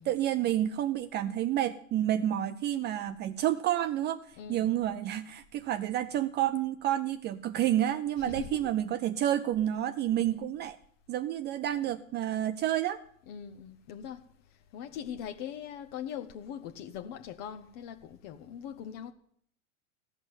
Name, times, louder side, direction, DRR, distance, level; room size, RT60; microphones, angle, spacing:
voice 1, 0.0-10.8 11.1-13.0, right 12 dB, 25° right, 0.5 m, -29 dB
voice 2, 4.4-4.7 8.2-8.6 10.3-10.4 13.3-14.2 14.7-19.1, left 9 dB, 45° left, 1.0 m, -41 dB
16.0 x 6.1 x 9.6 m
hypercardioid pair, 95°, 40 cm